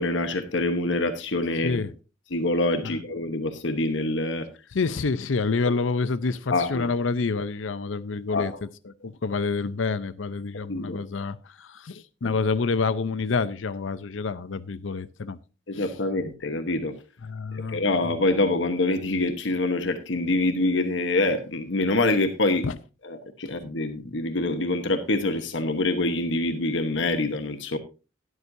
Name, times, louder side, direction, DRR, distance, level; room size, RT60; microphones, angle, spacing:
voice 1, 0.0-1.8 2.3-4.5 6.5-6.9 8.3-8.5 10.7-11.0 12.2-12.3 15.7-16.9 17.5-22.6 23.0-27.8, left 2 dB, 75° left, 1.1 m, -25 dB
voice 2, 4.7-8.5 8.8-15.4 15.7-15.9 17.2-18.2 22.6-22.8, left 4 dB, 90° left, 0.6 m, -28 dB
12.5 x 11.0 x 2.7 m
head